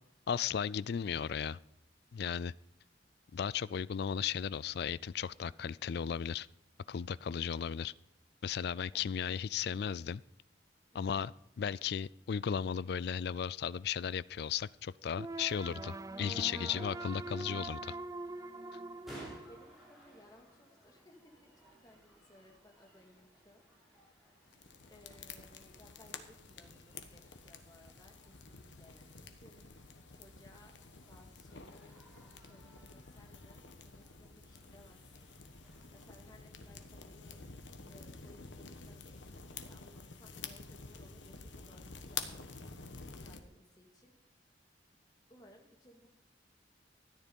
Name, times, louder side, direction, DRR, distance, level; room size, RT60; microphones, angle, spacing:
voice 1, 0.3-1.6 2.1-2.5 3.3-6.5 6.9-7.9 8.4-10.2 10.9-18.0, left 7 dB, 60° left, 20 dB, 0.3 m, -35 dB
voice 2, 8.9-9.5 19.5-21.2 21.4-23.6 23.9-24.4 24.9-30.8 31.1-35.3 35.9-37.4 37.8-42.5 43.2-44.1 45.3-46.1, left 1 dB, 20° left, 1 dB, 2.2 m, -62 dB
sound 1, 15.2-20.2, right 2 dB, 20° right, 0.4 m, -44 dB
sound 2, 18.3-36.8, right 1 dB, ahead, 4.5 m, -60 dB
sound 3, 24.5-43.4, left 5 dB, 85° left, 1.2 m, -49 dB
13.5 x 9.8 x 5.3 m, 0.78 s
head